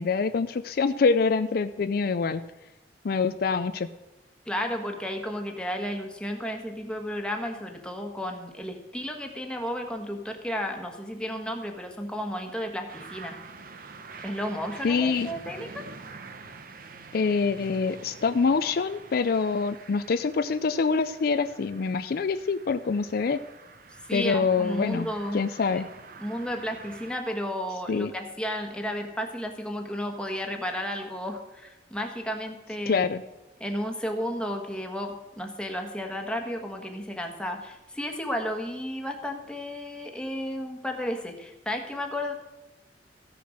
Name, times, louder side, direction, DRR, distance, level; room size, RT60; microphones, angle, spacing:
voice 1, 0.0-2.4 3.0-3.9 14.8-15.3 17.1-23.4 24.1-25.1 25.3-25.9 27.9-28.1 32.9-33.2, left 4 dB, 55° left, 11 dB, 0.4 m, -25 dB
voice 2, 4.4-13.4 14.2-15.8 24.1-25.4 25.7-25.8 26.2-33.1 33.6-42.3, equal, 5° left, 3 dB, 1.4 m, -33 dB
sound 1, 12.9-27.2, right 4 dB, 55° right, 0.9 m, -47 dB
14.5 x 6.8 x 6.5 m, 1.0 s
head